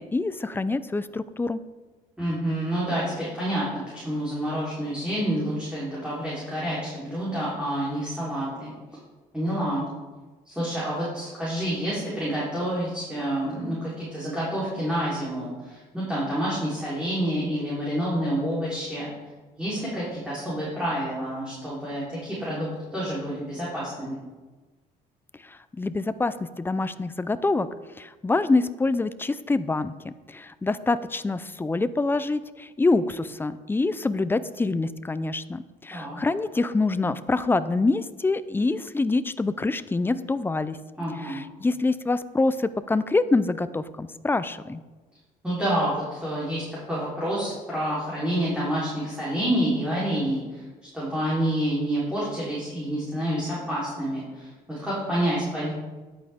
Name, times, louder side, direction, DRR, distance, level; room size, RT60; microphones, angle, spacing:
voice 1, 0.0-1.6 25.4-27.7 28.0-40.8 41.2-44.8, left 3 dB, 10° left, 14 dB, 0.4 m, -26 dB
voice 2, 2.2-8.7 9.3-9.9 10.5-19.1 19.6-24.2 35.9-36.2 41.0-41.4 45.4-50.6 50.9-55.7, equal, 5° right, -9 dB, 3.7 m, -28 dB
10.5 x 8.7 x 3.6 m, 1.2 s
cardioid pair, 110°, 17 cm